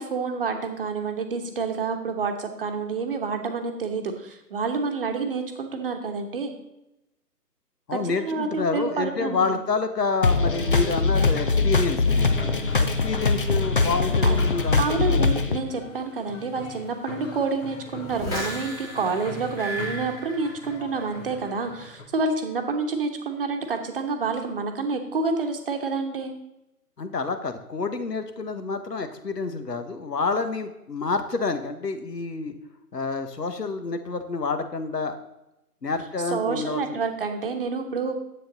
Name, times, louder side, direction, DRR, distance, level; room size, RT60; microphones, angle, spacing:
voice 1, 0.0-6.5 7.9-9.5 14.2-14.4 14.8-26.3 36.3-38.1, right 4 dB, 35° right, 5 dB, 1.2 m, -28 dB
voice 2, 7.9-12.4 13.0-15.3 27.0-32.5 32.9-35.2 35.8-37.0, left 4 dB, 75° left, 9 dB, 1.4 m, -28 dB
sound 1, 10.2-15.6, left 3 dB, 35° left, 0.5 m, -22 dB
sound 2, 12.2-22.1, left 2 dB, 50° left, 1.5 m, -42 dB
sound 3, 18.1-21.1 21.4-21.9, equal, 5° left, 1.5 m, -35 dB
10.0 x 8.0 x 3.9 m, 0.89 s
figure-of-eight pair, 145°, 48 cm